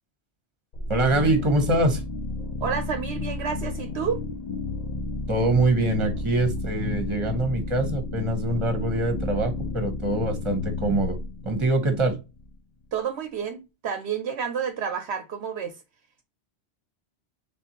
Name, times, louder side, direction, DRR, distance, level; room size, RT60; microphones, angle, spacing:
sound 1, 0.7-12.5, left 3 dB, 45° left, 0.6 m, -32 dB
voice 1, 0.9-2.0 5.3-11.2 11.4-12.2, right 2 dB, 25° right, 1.0 m, -24 dB
voice 2, 2.6-4.2 12.9-15.7, right 7 dB, 70° right, 0.9 m, -30 dB
4.2 x 3.5 x 2.8 m
omnidirectional pair, 1.2 m